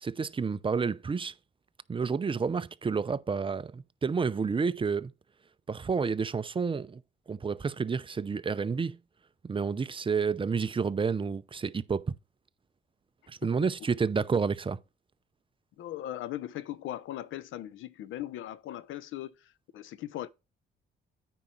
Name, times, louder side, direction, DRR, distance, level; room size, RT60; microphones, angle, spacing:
voice 1, 0.0-1.3 1.9-5.1 5.7-7.0 7.3-9.0 9.4-12.1 13.3-14.8, right 5 dB, 25° right, 0.6 m, -30 dB
voice 2, 15.8-20.3, left 13 dB, 85° left, 0.8 m, -39 dB
9.3 x 5.0 x 4.4 m
cardioid pair, 90°, 20 cm